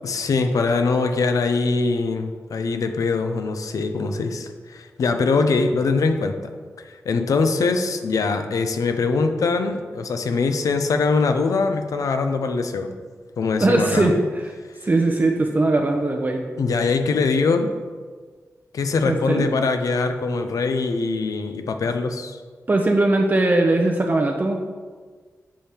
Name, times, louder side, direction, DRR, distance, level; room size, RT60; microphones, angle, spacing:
voice 1, 0.0-6.4 6.9-12.9 13.4-14.1 16.6-17.7 18.7-22.4, left 4 dB, 85° left, 6 dB, 0.5 m, -22 dB
voice 2, 13.6-14.5 14.8-16.4 19.0-19.5 22.7-24.6, right 2 dB, 30° right, 2 dB, 0.5 m, -20 dB
7.4 x 3.4 x 4.3 m, 1.5 s
wide cardioid pair, 95°, 6 cm